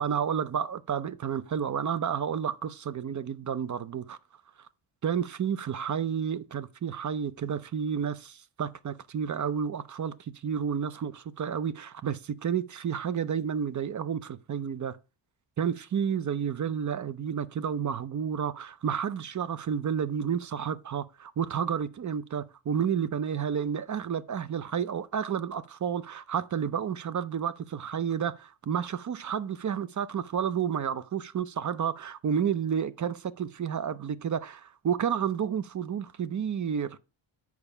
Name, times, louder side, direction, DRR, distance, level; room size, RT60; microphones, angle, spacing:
voice 1, 0.0-4.2 5.0-15.0 15.6-37.0, right 8 dB, 40° right, 0.5 m, -31 dB
7.1 x 4.8 x 5.4 m
cardioid pair, 120°, 49 cm